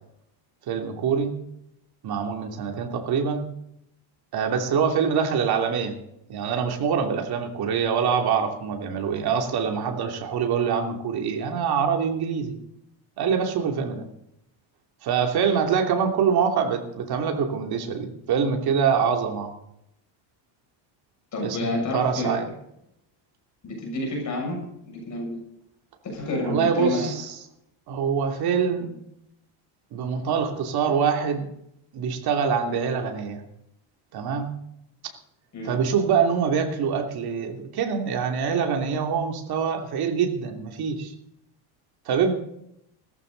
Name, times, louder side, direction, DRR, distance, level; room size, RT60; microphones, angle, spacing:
voice 1, 0.7-1.4 2.0-3.5 4.3-6.0 6.3-12.6 13.2-14.1 15.0-19.5 21.4-22.4 26.4-27.3 27.9-28.9 29.9-31.5 31.9-33.4 34.1-34.5 35.0-35.1 35.6-41.1 42.1-42.3, right 6 dB, 50° right, 3 dB, 3.0 m, -25 dB
voice 2, 21.3-22.3 23.6-25.4 26.0-27.1 35.5-35.8, left 2 dB, 35° left, 0 dB, 6.9 m, -29 dB
17.0 x 14.5 x 4.0 m, 0.78 s
cardioid pair, 140°, 49 cm